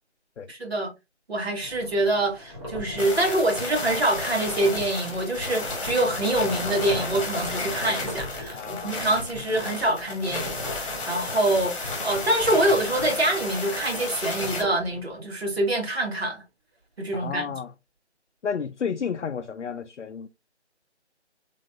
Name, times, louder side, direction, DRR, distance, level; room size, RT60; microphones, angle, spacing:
voice 1, 0.5-0.9 1.3-16.4 17.0-17.5, right 1 dB, 60° right, 2.1 m, -25 dB
sound 1, 1.6-15.1, left 1 dB, 25° right, 1.4 m, -41 dB
sound 2, 3.0-14.6, left 3 dB, 30° left, 1.3 m, -32 dB
voice 2, 8.5-9.0 17.1-17.7 18.4-20.3, left 6 dB, 85° left, 0.5 m, -31 dB
4.0 x 3.4 x 2.6 m
figure-of-eight pair, 155°, 34 cm